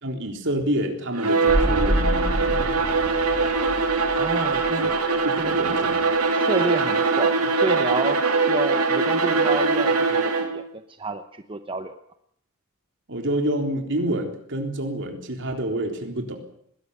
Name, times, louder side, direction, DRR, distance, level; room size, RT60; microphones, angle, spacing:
voice 1, 0.0-2.8 5.1-6.0 13.1-16.4, right 1 dB, 55° right, 4 dB, 3.8 m, -28 dB
Bowed string instrument, 1.1-10.6, right 4 dB, 85° right, 3.2 m, -22 dB
sound 1, 1.5-5.2 5.5-5.6, equal, 5° right, 2.1 m, -27 dB
voice 2, 4.2-4.9 5.4-5.6 6.3-10.6 11.0-12.0, right 2 dB, 25° right, 8 dB, 0.9 m, -29 dB
20.5 x 17.0 x 8.4 m, 0.68 s
head